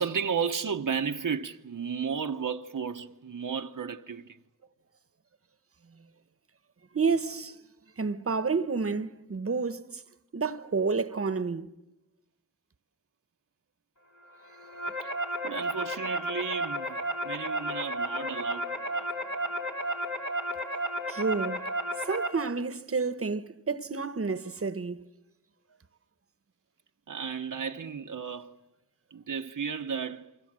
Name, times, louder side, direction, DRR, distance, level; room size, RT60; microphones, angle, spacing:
voice 1, 0.0-4.4 15.0-15.1 15.4-19.1 19.7-20.2 27.1-28.6 29.1-30.3, right 6 dB, 80° right, 1.0 m, -34 dB
voice 2, 6.9-7.6 8.0-10.0 10.3-11.7 21.1-21.7 22.0-25.1, right 4 dB, 45° right, 1.1 m, -30 dB
sound 1, 14.4-22.3, right 1 dB, 65° left, 3.2 m, -33 dB
29.0 x 24.0 x 7.6 m
wide cardioid pair, 75°, 31 cm